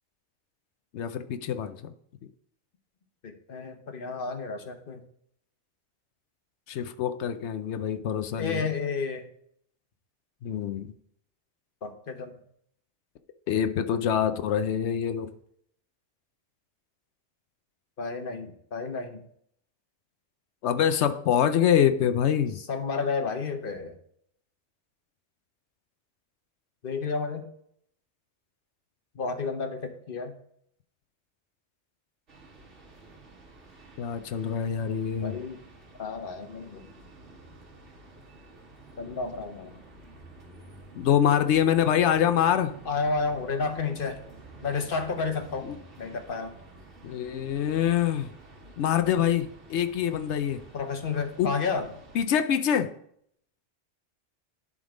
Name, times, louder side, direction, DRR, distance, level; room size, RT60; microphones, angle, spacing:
voice 1, 0.9-1.9 6.7-8.7 10.4-10.9 13.5-15.3 20.6-22.6 34.0-35.4 40.9-42.7 45.6-45.8 47.0-48.3 48.8-50.6 51.4-51.5 52.1-52.9, left 9 dB, 75° left, 0.9 m, -25 dB
voice 2, 3.2-5.0 8.4-9.3 11.8-12.4 18.0-19.2 22.7-23.9 26.8-27.5 29.1-30.3 35.2-35.6 36.0-36.9 39.0-39.7 42.9-44.2 44.6-45.7 46.0-46.5 50.7-51.9, left 4 dB, 50° left, 1.1 m, -31 dB
sound 1, 32.3-52.2, right 2 dB, 80° right, 2.2 m, -50 dB
11.0 x 3.8 x 4.9 m
omnidirectional pair, 1.2 m